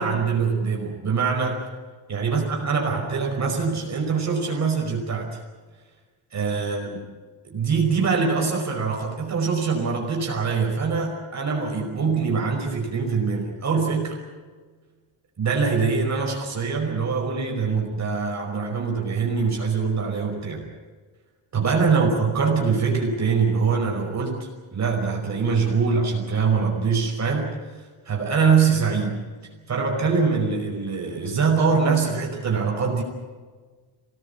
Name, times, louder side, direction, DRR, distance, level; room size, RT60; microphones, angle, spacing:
voice 1, 0.0-1.7 2.1-5.4 6.3-7.0 7.4-14.2 15.4-20.7 21.5-27.6 28.1-29.2 29.7-33.0, right 5 dB, 35° right, 0 dB, 5.3 m, -23 dB
25.0 x 18.5 x 8.5 m, 1.4 s
cardioid pair, 140°, 45 cm